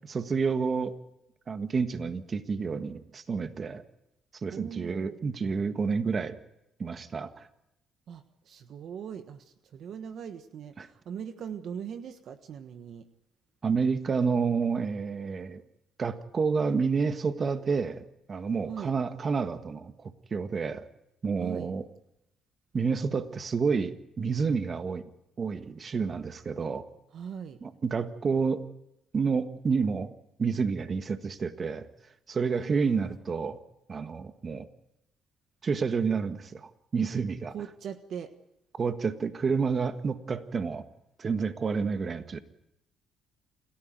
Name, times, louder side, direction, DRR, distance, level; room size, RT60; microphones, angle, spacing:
voice 1, 0.1-0.9 1.5-3.8 4.4-6.4 6.8-7.5 10.8-10.9 13.6-15.6 16.0-20.9 21.2-21.8 22.7-25.0 25.4-26.9 27.6-28.6 29.1-30.1 30.4-31.8 32.3-33.6 33.9-34.7 35.6-37.5 38.7-40.8 41.2-42.4, right 5 dB, 40° right, 9 dB, 1.6 m, -29 dB
voice 2, 4.5-5.2 8.1-13.1 18.7-18.9 21.4-21.7 27.1-27.6 32.5-33.2 37.5-38.3, right 8 dB, 65° right, 9 dB, 1.4 m, -40 dB
28.5 x 13.5 x 9.2 m, 0.87 s
cardioid pair, 80°, 0 cm